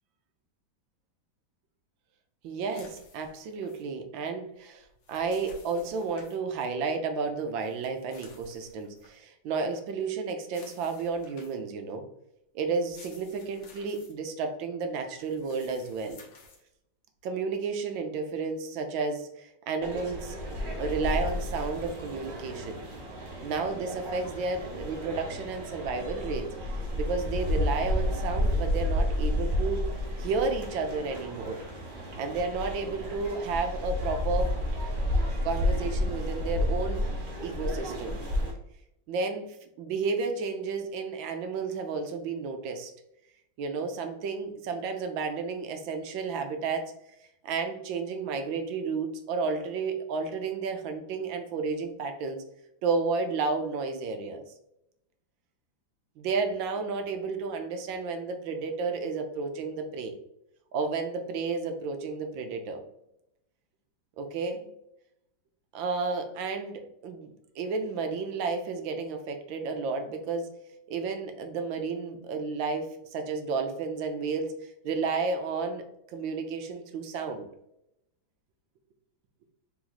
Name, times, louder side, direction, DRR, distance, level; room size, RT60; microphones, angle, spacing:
voice 1, 2.4-12.0 12.5-16.2 17.2-20.4 20.8-22.8 23.4-26.5 27.0-29.9 30.2-31.6 32.2-34.5 35.4-37.0 37.4-38.2 39.1-42.9 43.6-46.9 47.4-52.4 52.8-54.4 56.2-60.1 60.7-62.8 64.2-64.7 65.7-67.3 67.6-70.5 70.9-75.8 76.1-77.5, right 4 dB, 80° right, 6 dB, 1.4 m, -32 dB
sound 1, 2.7-3.8 4.8-6.4 7.6-9.2 10.4-11.7 12.7-14.1 15.1-16.6, left 3 dB, 70° left, 1.7 m, -54 dB
sound 2, 19.8-38.5, left 1 dB, 35° right, 0.9 m, -31 dB
4.2 x 3.0 x 3.9 m, 0.81 s
omnidirectional pair, 2.1 m